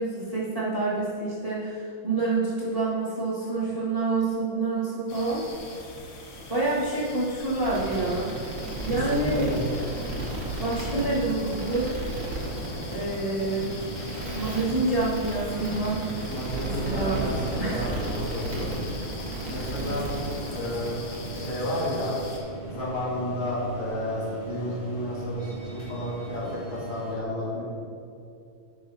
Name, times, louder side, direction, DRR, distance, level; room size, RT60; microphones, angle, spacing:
voice 1, 0.0-5.4 6.5-8.4 8.8-9.5 10.6-11.9 12.9-13.7 14.3-16.3 16.6-17.3 17.6-17.9 19.8-20.0, right 3 dB, 15° right, -9 dB, 1.9 m, -27 dB
sound 1, 5.1-22.4, left 2 dB, 55° left, 1.6 m, -43 dB
sound 2, 7.6-21.5, right 1 dB, 40° right, 1.9 m, -34 dB
voice 2, 8.9-9.6 16.2-18.7 19.5-21.0 21.3-22.1 22.7-27.7, left 1 dB, 70° left, -6 dB, 3.0 m, -31 dB
sound 3, 11.5-27.1, right 2 dB, 35° left, 2.3 m, -40 dB
11.0 x 8.9 x 2.9 m, 2.6 s
omnidirectional pair, 2.3 m